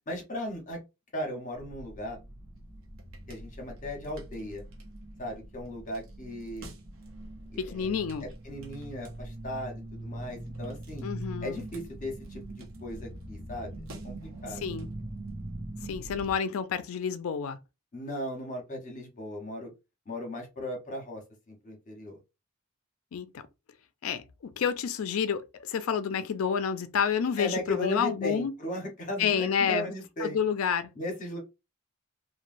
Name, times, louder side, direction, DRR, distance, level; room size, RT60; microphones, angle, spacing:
voice 1, 0.1-0.8 1.1-2.2 3.3-4.6 5.2-6.7 7.5-7.9 8.2-11.1 11.4-13.7 14.0-14.2 14.4-14.6 17.9-19.7 20.1-22.2 27.4-30.4 30.9-31.4, left 1 dB, 35° left, 1.0 m, -37 dB
sound 1, 1.5-16.4, right 1 dB, 60° right, 0.8 m, -42 dB
voice 2, 7.6-8.2 11.0-11.6 14.6-14.9 15.8-17.6 23.1-23.3 24.0-28.5 29.2-29.9 30.2-30.9, left 7 dB, 70° left, 0.4 m, -29 dB
3.0 x 2.2 x 2.6 m
head